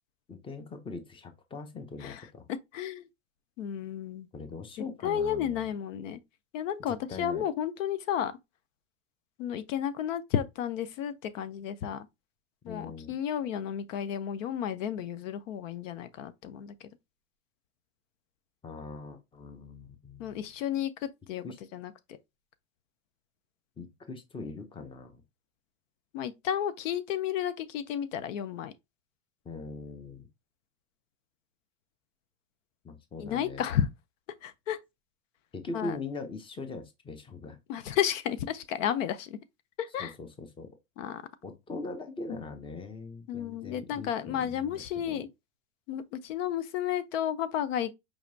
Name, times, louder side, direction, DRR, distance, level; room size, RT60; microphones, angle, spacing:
voice 1, 0.3-2.5 4.3-5.7 6.9-7.4 12.6-13.1 18.6-20.4 21.4-21.6 23.8-25.2 29.4-30.3 32.8-33.6 35.5-37.6 40.0-40.7 41.4-45.2, left 3 dB, 15° left, 0.7 m, -41 dB
voice 2, 2.7-3.1 3.6-4.3 5.0-6.2 6.5-8.3 9.4-12.1 12.6-16.9 20.2-21.4 21.7-21.9 26.1-28.7 33.2-33.9 34.4-34.8 35.7-36.0 37.7-39.4 39.8-40.1 41.0-41.2 43.3-45.3 45.9-47.9, left 9 dB, 80° left, 0.7 m, -32 dB
4.9 x 2.9 x 2.7 m
supercardioid pair, 120°, 38 cm